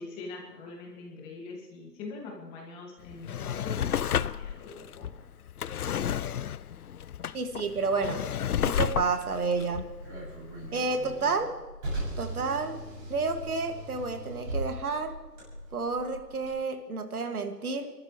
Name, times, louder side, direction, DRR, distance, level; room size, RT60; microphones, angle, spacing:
voice 1, 0.0-5.1, left 3 dB, 10° left, -1 dB, 2.1 m, -43 dB
Drawer open or close, 3.0-10.7 11.2-11.3, left 9 dB, 60° left, 0.6 m, -32 dB
voice 2, 7.3-8.2 8.6-9.9 10.7-11.6 12.2-12.8 13.1-15.2 15.7-17.9, right 4 dB, 60° right, 6 dB, 2.4 m, -30 dB
Car, 8.9-16.5, right 1 dB, 25° right, 7.0 m, -39 dB
29.5 x 13.0 x 3.2 m, 1.3 s
hypercardioid pair, 160°, 50 cm